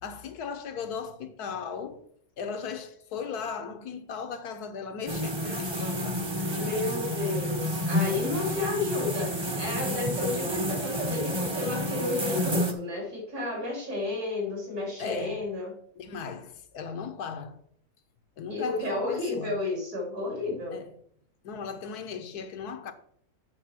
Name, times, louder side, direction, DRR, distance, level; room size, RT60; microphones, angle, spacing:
voice 1, 0.0-2.0 2.4-6.2 15.0-15.4 16.0-17.6 18.4-19.6 20.7-20.9 21.4-22.9, left 6 dB, 80° left, 1.4 m, -37 dB
sound 1, 5.1-12.7, equal, 20° right, 0.8 m, -30 dB
voice 2, 6.5-15.7 18.5-20.8, left 2 dB, 75° right, 4.0 m, -32 dB
8.4 x 5.5 x 5.8 m
omnidirectional pair, 1.6 m